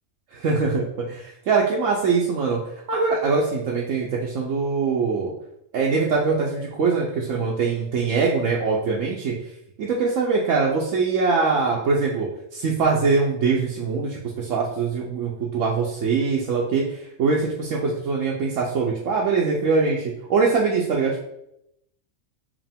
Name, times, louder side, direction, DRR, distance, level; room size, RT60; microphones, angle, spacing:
voice 1, 0.3-2.6 2.9-5.3 5.7-9.3 9.8-21.2, right 4 dB, 75° right, -3 dB, 1.1 m, -23 dB
4.9 x 2.9 x 3.5 m, 0.79 s
omnidirectional pair, 1.4 m